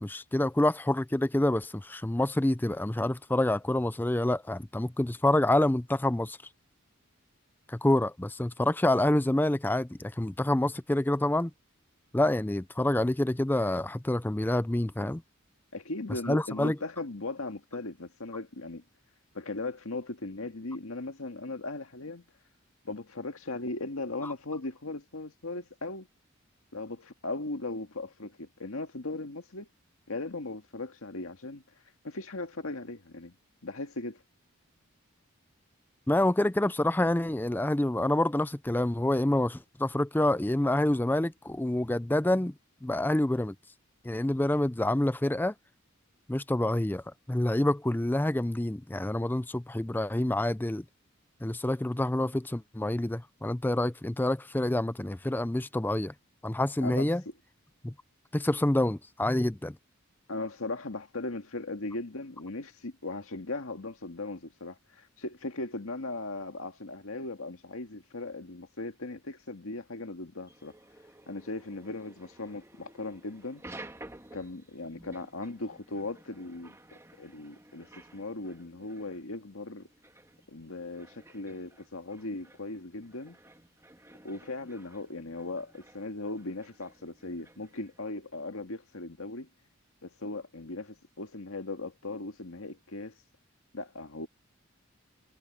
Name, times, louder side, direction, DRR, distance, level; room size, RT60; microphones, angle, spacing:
voice 1, 0.0-6.4 7.7-11.5 12.1-15.2 16.3-16.8 24.2-24.3 36.1-42.5 42.8-43.5 44.0-45.5 46.3-47.0 47.3-50.8 51.4-56.1 56.4-57.2 57.8-57.9 58.3-59.8, left 1 dB, 10° left, 0.4 m, -27 dB
voice 2, 15.7-18.8 19.3-22.2 22.9-26.1 26.7-29.7 30.1-31.6 32.0-33.4 33.6-34.2 56.8-57.1 60.3-70.7 71.3-73.6 74.3-79.9 80.5-83.4 84.2-89.5 90.0-93.2 93.7-94.3, left 2 dB, 80° left, 1.9 m, -38 dB
sound 1, 70.5-88.0, right 1 dB, 15° right, 1.8 m, -53 dB
head